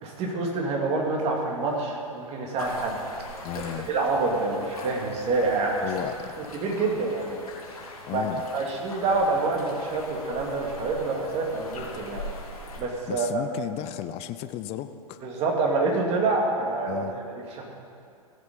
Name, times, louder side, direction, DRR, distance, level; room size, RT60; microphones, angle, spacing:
voice 1, 0.0-3.0 3.5-5.9 6.5-7.3 8.1-8.2 8.5-12.2 12.6-13.4 15.2-17.0 17.3-17.6, right 3 dB, 35° right, 0 dB, 2.5 m, -27 dB
sound 1, 2.6-12.8, left 2 dB, 80° left, 3.0 m, -42 dB
voice 2, 3.4-3.9 5.8-6.3 8.1-8.4 13.1-15.2 16.9-17.2, left 12 dB, 35° left, 11 dB, 0.7 m, -34 dB
16.5 x 7.6 x 5.4 m, 2.4 s
hypercardioid pair, 105°, 18 cm